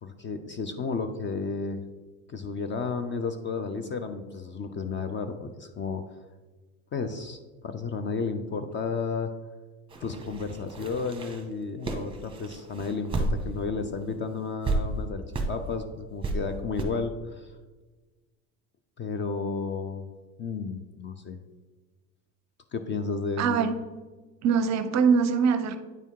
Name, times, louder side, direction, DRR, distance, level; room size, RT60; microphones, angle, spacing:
voice 1, 0.0-1.8 2.3-6.0 6.9-9.3 10.0-17.6 19.0-20.1 20.4-21.4 22.7-23.6, left 4 dB, 25° left, 8 dB, 0.4 m, -32 dB
sound 1, 9.9-13.7 14.0-14.1 14.6-14.8 15.3-15.5 16.2-16.3 16.8-16.9, right 2 dB, 10° right, 1.1 m, -31 dB
voice 2, 23.4-23.7 24.4-25.8, right 6 dB, 40° right, 11 dB, 0.6 m, -23 dB
9.2 x 3.4 x 4.5 m, 1.3 s
supercardioid pair, 100°, 45 cm